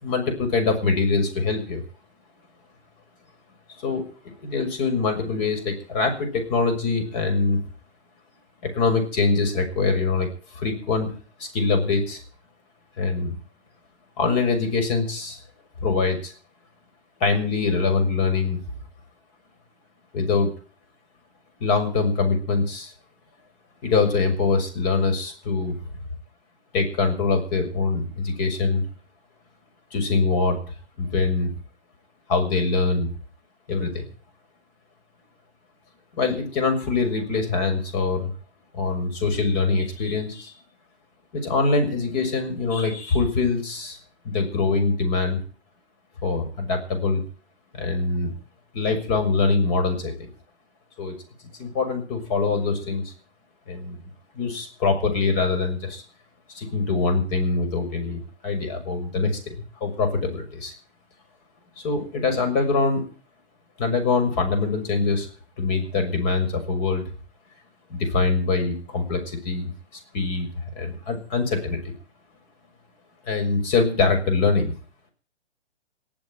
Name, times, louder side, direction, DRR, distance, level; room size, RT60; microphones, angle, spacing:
voice 1, 0.0-1.8 3.8-4.0 4.4-7.6 8.6-11.1 11.4-12.2 13.0-13.4 14.2-15.4 15.8-16.3 17.2-18.6 20.1-20.5 21.6-22.9 23.8-25.8 26.7-28.8 29.9-30.6 31.0-31.5 32.3-33.1 33.7-34.0 36.2-38.3 38.7-40.5 41.3-44.0 44.2-45.4 46.2-47.2 47.7-48.3 48.7-50.1 51.0-51.1 51.6-53.1 53.7-54.0 54.3-56.0 56.5-60.7 61.8-63.0 63.8-65.3 65.6-67.0 67.9-69.7 70.1-70.5 70.7-71.8 73.3-74.7, left 4 dB, 40° left, 6 dB, 6.6 m, -23 dB
19.0 x 8.0 x 9.2 m, 0.40 s
figure-of-eight pair, 120°, 34 cm